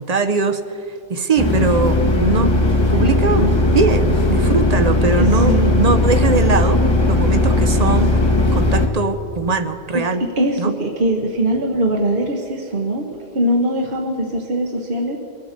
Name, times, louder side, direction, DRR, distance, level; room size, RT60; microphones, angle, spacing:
voice 1, 0.0-2.6 2.9-6.8 7.1-8.2 8.5-10.2 10.6-10.7, right 4 dB, 45° right, 9 dB, 0.8 m, -21 dB
sound 1, 1.4-8.9, left 2 dB, 25° left, 1.2 m, -17 dB
voice 2, 5.2-5.7 9.9-13.1 13.3-15.2, right 1 dB, 60° right, 1 dB, 1.2 m, -21 dB
23.0 x 8.2 x 6.5 m, 2.8 s
omnidirectional pair, 1.0 m